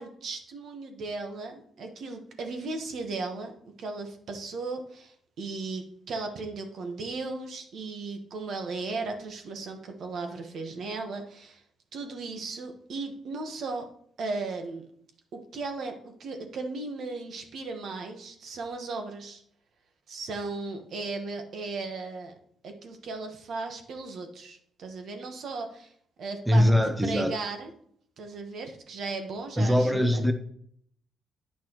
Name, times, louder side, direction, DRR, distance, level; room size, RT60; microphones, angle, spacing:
voice 1, 0.0-11.6 11.9-13.9 14.2-14.9 15.3-19.4 20.1-22.3 22.6-25.9 26.2-27.7 28.2-30.2, right 3 dB, 65° right, 1.2 m, -36 dB
voice 2, 26.5-27.3 29.6-30.3, equal, 5° right, 0.7 m, -22 dB
8.9 x 5.9 x 3.0 m
cardioid pair, 90°, 0 cm